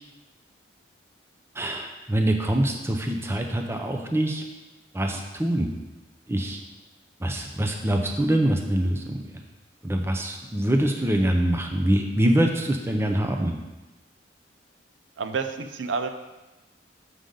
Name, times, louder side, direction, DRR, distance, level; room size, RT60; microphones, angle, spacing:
voice 1, 1.6-4.4 4.9-5.7 6.3-6.6 7.2-9.2 9.8-13.5, right 1 dB, 15° right, 3 dB, 0.5 m, -24 dB
voice 2, 15.2-16.1, right 5 dB, 80° right, 8 dB, 0.5 m, -29 dB
6.8 x 6.4 x 3.8 m, 1.1 s
head